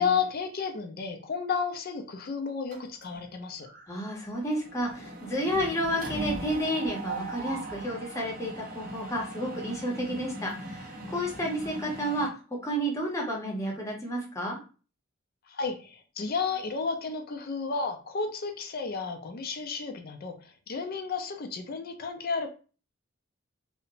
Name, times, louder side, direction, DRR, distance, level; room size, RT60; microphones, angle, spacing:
voice 1, 0.0-3.7 15.5-22.5, left 5 dB, 50° left, 5 dB, 0.5 m, -32 dB
Mechanisms, 2.7-3.3 3.6-3.9 4.1-12.3, right 1 dB, 45° right, 0.7 m, -39 dB
voice 2, 3.9-12.3 12.6-14.6, equal, 15° left, -2 dB, 0.8 m, -31 dB
2.9 x 2.1 x 2.5 m, 0.36 s
head